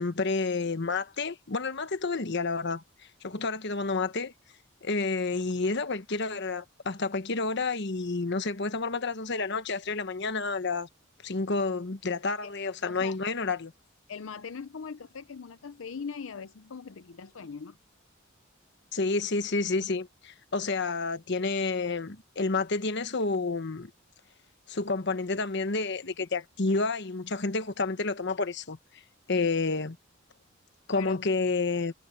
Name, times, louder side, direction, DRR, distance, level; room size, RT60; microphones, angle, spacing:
voice 1, 0.0-2.8 3.2-4.3 4.8-10.9 11.2-13.7 18.9-23.9 24.7-28.8 29.3-30.0 30.9-31.9, left 3 dB, 60° left, 1.2 m, -29 dB
voice 2, 12.8-13.2 14.1-17.8 30.9-31.2, left 5 dB, 80° left, 0.6 m, -40 dB
head